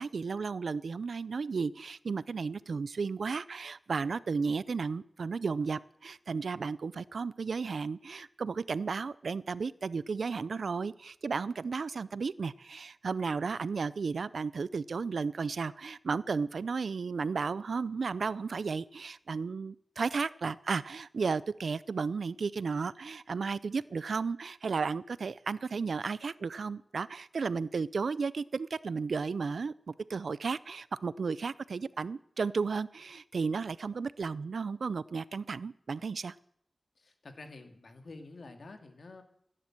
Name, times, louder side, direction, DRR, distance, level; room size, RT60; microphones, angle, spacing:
voice 1, 0.0-36.3, right 5 dB, 90° right, 18 dB, 0.5 m, -34 dB
voice 2, 37.0-39.2, left 3 dB, 75° left, 6 dB, 2.2 m, -49 dB
16.5 x 10.0 x 7.6 m, 0.69 s
wide cardioid pair, 70°, 0 cm